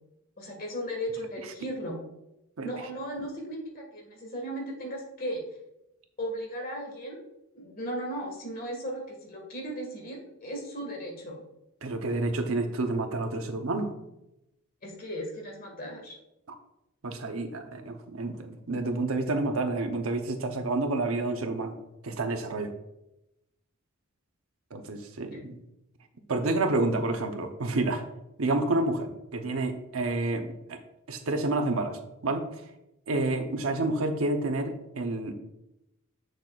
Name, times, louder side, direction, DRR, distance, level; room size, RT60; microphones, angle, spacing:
voice 1, 0.4-2.0 2.6-5.4 6.2-7.2 7.5-11.4 14.8-16.2 25.3-25.4, equal, 45° left, 0 dB, 1.7 m, -36 dB
voice 2, 11.8-13.9 17.0-21.8 22.0-22.7 24.7-25.6 26.3-28.0 28.4-30.8 31.1-32.6 33.1-35.3, right 2 dB, 80° right, 6 dB, 0.8 m, -29 dB
7.8 x 6.5 x 2.4 m, 0.89 s
head